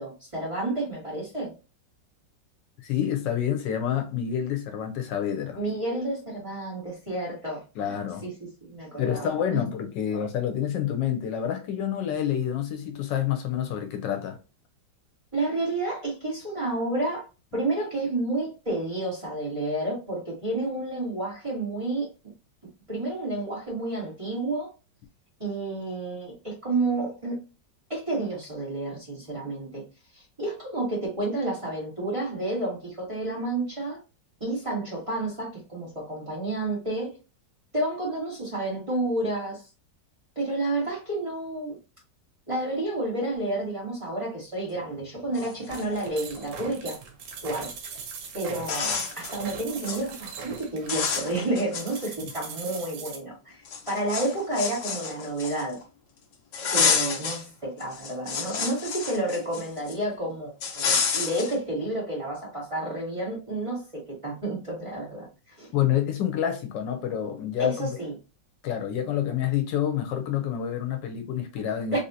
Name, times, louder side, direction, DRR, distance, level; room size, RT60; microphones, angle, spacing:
voice 1, 0.0-1.5 5.5-7.9 8.2-8.3 8.6-9.3 15.3-17.3 17.5-22.1 22.9-24.7 25.4-27.4 27.9-29.8 30.4-34.0 34.4-37.2 37.7-39.6 40.3-41.7 42.5-47.0 47.4-47.7 48.3-53.6 53.9-55.8 56.7-65.3 65.6-65.7 67.6-68.1 71.9-72.0, right 2 dB, 20° right, 1.5 m, -30 dB
voice 2, 2.8-5.6 7.8-8.3 9.0-14.4 65.7-67.9 68.6-72.0, left 10 dB, 80° left, 1.3 m, -28 dB
sound 1, 45.0-45.1 45.3-46.5 48.0-48.1 48.6-49.4 49.7-50.0 50.4-50.6 50.9-52.3 52.7-52.8 53.7-55.8 56.5-57.4 57.8-59.9 60.6-61.6, left 5 dB, 65° left, 0.8 m, -29 dB
sound 2, 45.7-53.2, right 5 dB, 85° right, 1.5 m, -40 dB
3.5 x 2.7 x 2.7 m
omnidirectional pair, 2.0 m